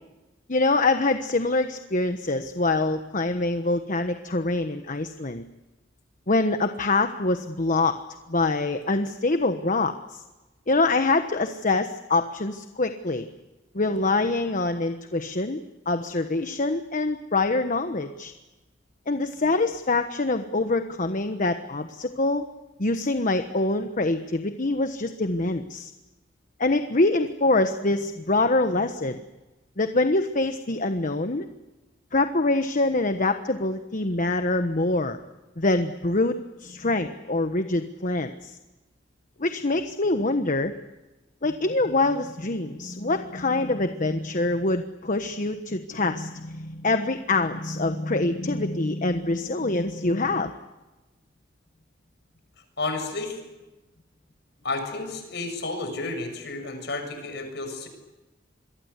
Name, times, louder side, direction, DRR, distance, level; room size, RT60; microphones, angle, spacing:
voice 1, 0.5-5.4 6.3-7.9 8.3-10.2 10.7-13.3 13.7-18.3 19.1-22.4 22.8-25.9 26.6-29.2 29.8-31.4 32.1-35.2 35.6-38.6 39.4-40.7 41.4-50.5, left 2 dB, 45° left, 8 dB, 1.2 m, -25 dB
voice 2, 52.8-53.4 54.6-57.9, left 3 dB, 65° left, 6 dB, 7.0 m, -31 dB
27.5 x 23.5 x 8.3 m, 1.1 s
head